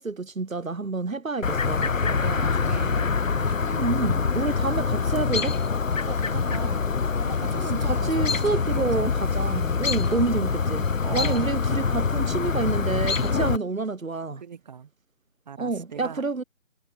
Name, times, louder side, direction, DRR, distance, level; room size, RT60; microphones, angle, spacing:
voice 1, 0.0-1.9 3.6-5.6 7.5-14.4 15.6-16.4, right 3 dB, 80° right, 1.5 m, -28 dB
Chirp tweet, 1.4-13.6, left 5 dB, 75° left, 1.0 m, -25 dB
voice 2, 2.0-3.9 6.1-6.9 7.2-9.1 9.7-10.4 11.0-11.5 14.4-14.9 15.5-16.3, right 7 dB, 35° right, 3.8 m, -39 dB
figure-of-eight pair, 155°, 40 cm